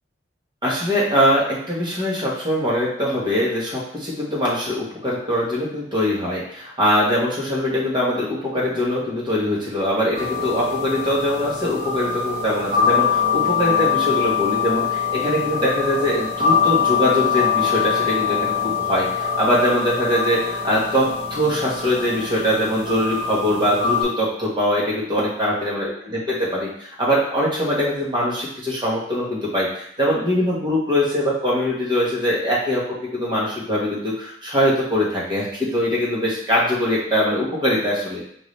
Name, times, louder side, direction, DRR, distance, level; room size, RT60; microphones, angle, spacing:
voice 1, 0.6-38.2, equal, 25° right, -6 dB, 1.4 m, -22 dB
sound 1, 10.1-24.0, left 6 dB, 45° right, 0.9 m, -23 dB
4.7 x 2.7 x 3.3 m, 0.65 s
head